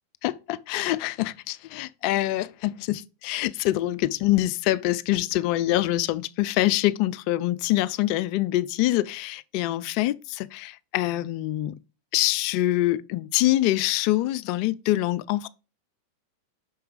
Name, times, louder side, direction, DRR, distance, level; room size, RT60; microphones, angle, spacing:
voice 1, 0.2-11.7 12.1-15.5, left 16 dB, 45° left, 0.4 m, -25 dB
6.0 x 4.6 x 4.8 m
figure-of-eight pair, 90°, 0 cm